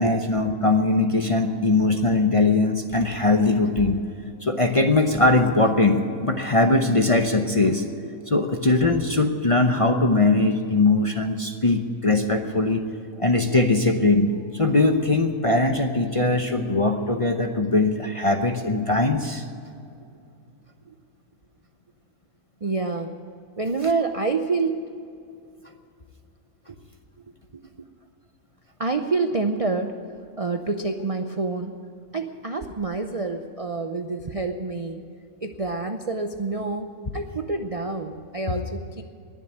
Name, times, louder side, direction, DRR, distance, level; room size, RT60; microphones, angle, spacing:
voice 1, 0.0-4.0 4.4-7.8 8.3-12.8 13.2-19.4, left 2 dB, 30° left, 4 dB, 0.7 m, -21 dB
voice 2, 22.6-23.1 23.6-24.8 28.8-29.9 30.4-31.7 32.1-35.0 35.4-36.9 37.1-39.0, right 3 dB, 40° right, 6 dB, 0.5 m, -27 dB
20.5 x 7.5 x 9.0 m, 2.5 s
omnidirectional pair, 1.5 m